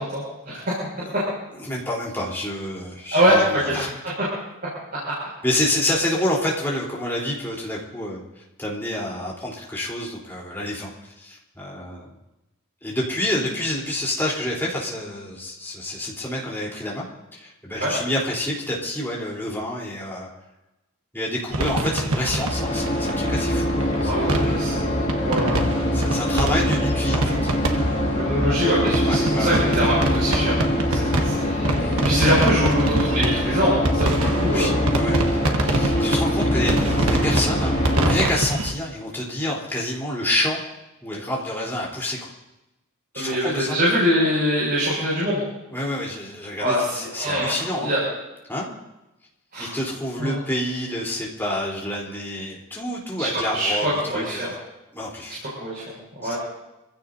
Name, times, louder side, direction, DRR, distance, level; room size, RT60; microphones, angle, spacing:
voice 1, 0.1-0.6 3.1-3.8 17.8-17.9 24.0-25.6 28.1-30.6 30.9-31.7 32.0-34.7 43.1-45.4 46.6-48.0 49.5-49.7 50.2-50.4 53.2-53.3 53.5-54.5 55.6-56.4, equal, 45° right, -7 dB, 6.1 m, -23 dB
voice 2, 1.5-3.9 5.4-12.1 12.8-17.0 17.3-20.3 21.1-24.8 25.9-28.1 29.0-29.6 31.7-32.0 34.5-35.2 35.5-40.6 41.0-42.3 43.1-43.8 45.7-47.9 48.5-48.7 49.6-54.6 54.9-55.4 56.2-56.3, left 1 dB, 10° left, -4 dB, 3.7 m, -28 dB
sound 1, 21.5-38.7, right 2 dB, 85° right, 1.3 m, -26 dB
sound 2, 22.4-38.2, left 1 dB, 30° left, 2.3 m, -23 dB
26.5 x 16.0 x 2.8 m, 0.96 s
head